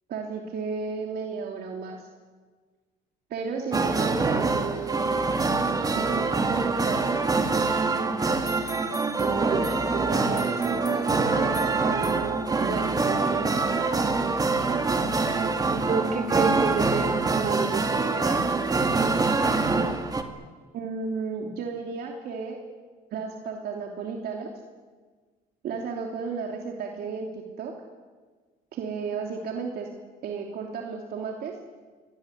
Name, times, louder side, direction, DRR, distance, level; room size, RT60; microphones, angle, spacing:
voice 1, 0.1-2.1 3.3-5.3 5.9-7.3 9.2-9.6 9.9-11.5 11.8-13.7 20.7-22.6 23.1-24.5 25.6-27.7 28.7-29.9 30.2-31.6, right 5 dB, 65° right, 1 dB, 3.1 m, -33 dB
sound 1, 3.7-20.2, right 3 dB, 20° right, 2.3 m, -25 dB
voice 2, 9.3-10.1 15.7-18.5, right 5 dB, 50° right, 4 dB, 4.6 m, -30 dB
25.0 x 18.5 x 10.0 m, 1.4 s
cardioid pair, 110°, 17 cm